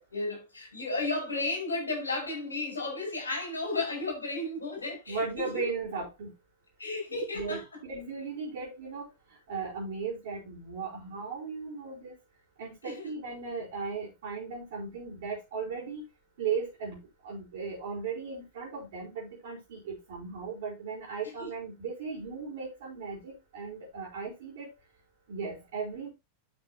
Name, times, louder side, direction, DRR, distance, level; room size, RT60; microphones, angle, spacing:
voice 1, 0.0-5.7 6.8-7.6 12.8-13.1 21.2-21.5, left 2 dB, 75° left, 6.1 m, -33 dB
voice 2, 5.1-6.3 7.1-9.1 9.5-12.1 12.6-16.0 16.4-17.0 17.2-24.7 25.3-26.1, right 5 dB, 55° right, 4.9 m, -37 dB
12.5 x 6.2 x 3.0 m
figure-of-eight pair, 90°, 0 cm